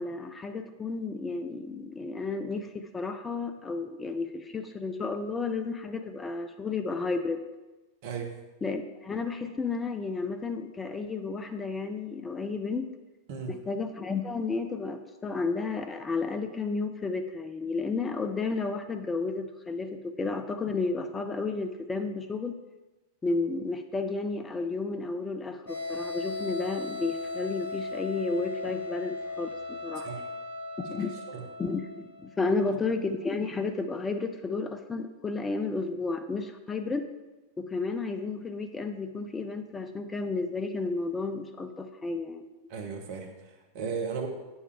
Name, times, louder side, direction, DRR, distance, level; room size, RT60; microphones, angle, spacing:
voice 1, 0.0-7.5 8.6-12.9 13.5-22.6 23.2-30.1 30.8-31.1 31.6-37.1 37.6-42.5, left 3 dB, 15° left, 7 dB, 0.5 m, -32 dB
voice 2, 8.0-8.3 13.3-13.5 30.0-30.2 31.3-31.4 42.7-44.3, right 6 dB, 50° right, 3 dB, 1.1 m, -35 dB
sound 1, 25.7-32.6, left 3 dB, 85° right, 1.9 m, -37 dB
8.4 x 7.1 x 3.4 m, 1.1 s
figure-of-eight pair, 90°, 0 cm